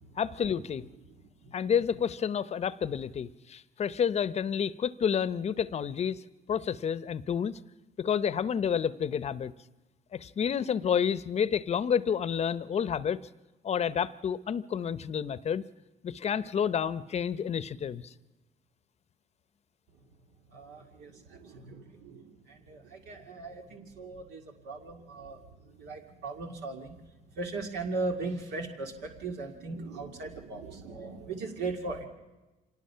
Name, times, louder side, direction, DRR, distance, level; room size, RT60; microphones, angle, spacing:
voice 1, 0.2-0.9 1.5-6.2 6.5-7.5 8.0-9.5 10.1-13.2 13.6-15.6 16.0-18.1, left 7 dB, 40° left, 16 dB, 0.7 m, -29 dB
voice 2, 20.5-27.0 27.4-32.1, right 3 dB, 85° right, 2 dB, 2.1 m, -38 dB
25.5 x 19.0 x 5.7 m, 1.1 s
cardioid pair, 110°, 17 cm